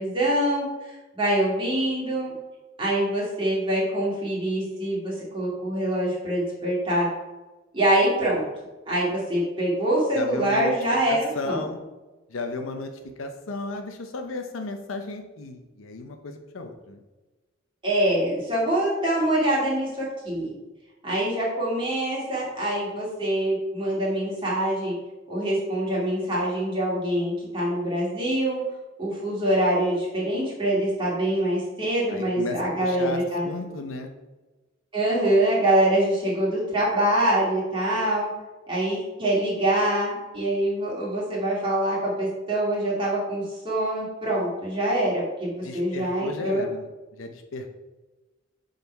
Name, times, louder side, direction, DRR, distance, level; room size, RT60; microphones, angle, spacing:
voice 1, 0.0-2.3 2.8-7.1 7.7-8.4 8.9-11.6 17.8-20.5 21.0-25.0 25.3-28.6 29.0-33.5 34.9-38.3 38.7-46.7, right 1 dB, 25° right, -6 dB, 2.2 m, -24 dB
voice 2, 10.1-11.8 12.3-12.9 13.2-17.0 32.1-34.1 45.6-47.7, left 3 dB, 75° left, 5 dB, 0.6 m, -34 dB
6.8 x 4.1 x 4.5 m, 1.1 s
head